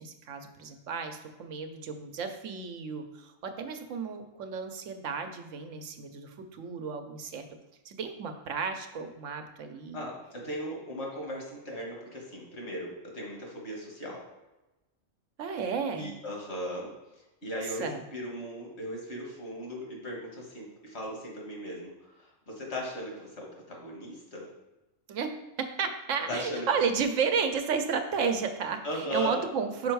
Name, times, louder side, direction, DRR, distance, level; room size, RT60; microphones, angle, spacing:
voice 1, 0.0-7.4 7.8-10.0 15.4-16.1 17.8-18.0 25.1-29.9, right 5 dB, 80° right, 7 dB, 1.1 m, -32 dB
voice 2, 9.9-14.2 16.0-16.9 17.4-24.5 26.3-26.7 28.8-29.4, equal, 60° left, -1 dB, 1.8 m, -37 dB
5.7 x 4.3 x 4.6 m, 1.0 s
omnidirectional pair, 1.3 m